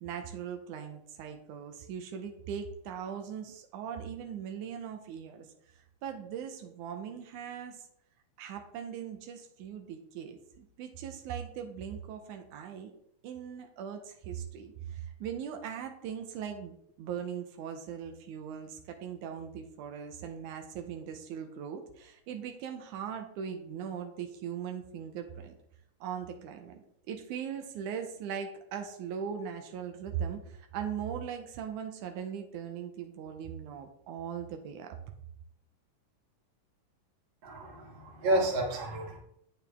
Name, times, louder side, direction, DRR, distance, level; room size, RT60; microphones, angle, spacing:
voice 1, 0.0-5.5 6.0-7.8 8.4-12.9 13.2-25.6 26.0-35.0, right 8 dB, 85° right, 5 dB, 2.3 m, -40 dB
voice 2, 37.4-39.2, right 1 dB, 45° right, 0 dB, 2.2 m, -30 dB
8.9 x 6.5 x 3.5 m, 0.73 s
omnidirectional pair, 3.5 m